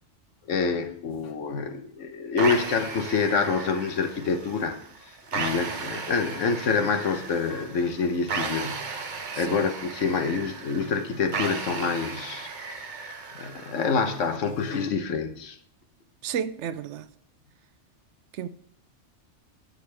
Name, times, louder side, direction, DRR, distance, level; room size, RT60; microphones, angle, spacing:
voice 1, 0.5-4.8 5.3-12.5 13.3-15.6, left 5 dB, 85° left, 1.3 m, -27 dB
sound 1, 1.1-1.3 4.3-4.7 5.0-6.2 6.8-7.7 8.7-9.6 10.0-10.3 11.3-11.5 11.7-12.3 13.7-15.0 15.8-16.0 16.3-16.4 16.9-17.0, left 3 dB, 50° left, 1.1 m, -42 dB
sound 2, 2.4-14.4, right 4 dB, 45° right, 0.9 m, -36 dB
voice 2, 9.3-9.6 16.2-17.1 18.3-18.5, right 8 dB, 75° right, 0.9 m, -32 dB
10.0 x 8.5 x 3.3 m
omnidirectional pair, 1.2 m